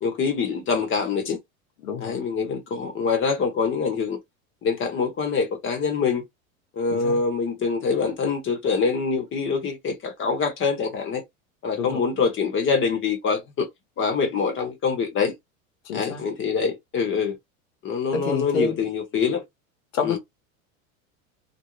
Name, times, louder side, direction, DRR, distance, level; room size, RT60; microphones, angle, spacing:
voice 1, 0.0-1.4 2.0-4.2 4.6-6.2 6.8-11.2 11.6-13.7 14.0-15.3 15.9-17.4 17.8-19.4 20.0-20.2, left 5 dB, 30° left, 0.9 m, -25 dB
voice 2, 1.8-2.2 6.9-7.2 11.8-12.0 15.8-16.2 18.1-18.8 19.9-20.2, left 5 dB, 80° left, 1.1 m, -28 dB
2.5 x 2.0 x 3.0 m
supercardioid pair, 115°, 41 cm